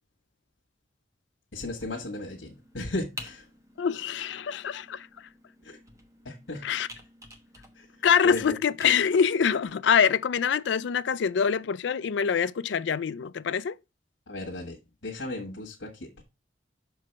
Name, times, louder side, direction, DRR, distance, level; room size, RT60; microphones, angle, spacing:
voice 1, 1.5-3.5 5.6-5.8 6.2-6.7 7.7-7.9 8.2-8.6 14.3-16.2, left 2 dB, 85° left, 1.5 m, -36 dB
Computer keyboard, 1.6-8.9, right 1 dB, 15° right, 1.0 m, -49 dB
voice 2, 3.8-5.1 6.6-6.9 8.0-13.7, left 7 dB, 70° left, 0.4 m, -25 dB
6.1 x 4.6 x 4.6 m
head